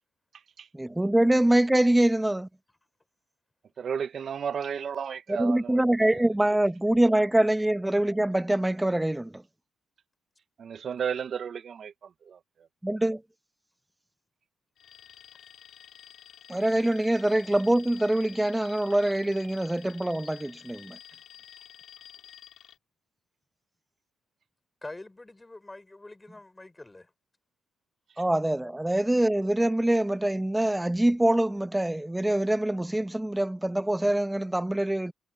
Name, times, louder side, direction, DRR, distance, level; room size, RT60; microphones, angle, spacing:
voice 1, 0.7-2.5 5.3-9.4 12.8-13.2 16.5-21.0 28.2-35.1, right 1 dB, 10° right, 0.7 m, -24 dB
voice 2, 3.8-5.8 10.6-12.7, right 7 dB, 55° right, 0.5 m, -33 dB
Alarm, 14.8-22.8, left 10 dB, 70° left, 3.1 m, -50 dB
voice 3, 24.8-27.1, left 2 dB, 15° left, 5.0 m, -45 dB
cardioid pair, 90°, 0 cm